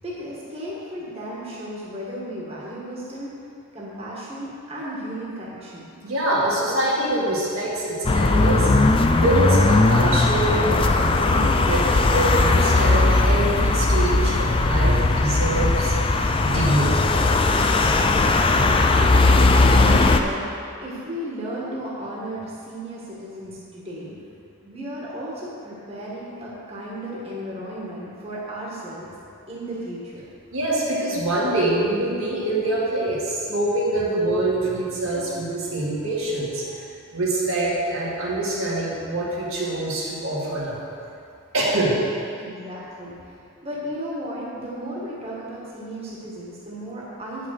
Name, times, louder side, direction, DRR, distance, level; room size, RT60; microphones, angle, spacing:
voice 1, 0.0-3.3 3.7-5.9 18.5-24.2 24.6-29.1 29.5-30.2 42.4-43.1 43.6-47.5, equal, 30° right, -6 dB, 1.5 m, -34 dB
voice 2, 6.0-15.9 16.4-16.9 30.5-36.8 37.1-40.8 41.5-42.0, right 1 dB, 80° right, -6 dB, 2.2 m, -25 dB
sound 1, 8.0-20.2, left 2 dB, 25° left, 0.4 m, -18 dB
9.2 x 5.8 x 6.5 m, 2.5 s
head